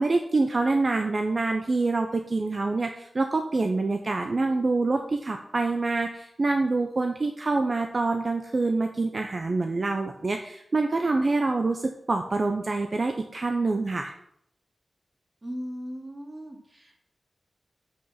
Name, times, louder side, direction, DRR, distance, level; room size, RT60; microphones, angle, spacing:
voice 1, 0.0-14.1, right 3 dB, 45° right, 5 dB, 0.8 m, -26 dB
voice 2, 15.4-17.0, equal, 30° right, 0 dB, 2.8 m, -38 dB
8.0 x 6.7 x 5.9 m, 0.72 s
wide cardioid pair, 85°, 0 cm